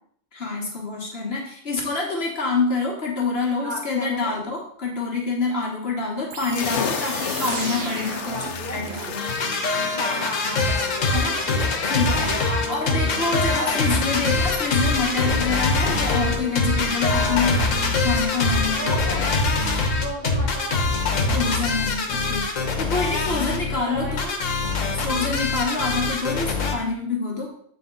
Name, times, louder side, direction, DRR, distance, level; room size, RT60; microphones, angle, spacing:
voice 1, 0.3-8.4 8.7-9.3 11.1-11.4 11.8-12.3 12.7-17.5 18.0-18.8 21.3-24.3 25.0-27.5, left 4 dB, 55° left, -2 dB, 1.5 m, -26 dB
voice 2, 3.6-4.4 6.5-7.0 8.2-8.9 9.9-11.5 11.8-13.3 13.5-13.8 17.1-17.8 18.7-19.5 20.0-21.0 23.7-24.2, equal, 35° right, -5 dB, 2.4 m, -33 dB
sound 1, 6.3-9.2, right 5 dB, 80° right, 1.2 m, -34 dB
sound 2, 6.5-19.8, left 7 dB, 70° left, 0.9 m, -36 dB
sound 3, 9.1-26.7, left 3 dB, 90° left, 1.3 m, -23 dB
8.2 x 4.1 x 3.8 m, 0.64 s
omnidirectional pair, 1.3 m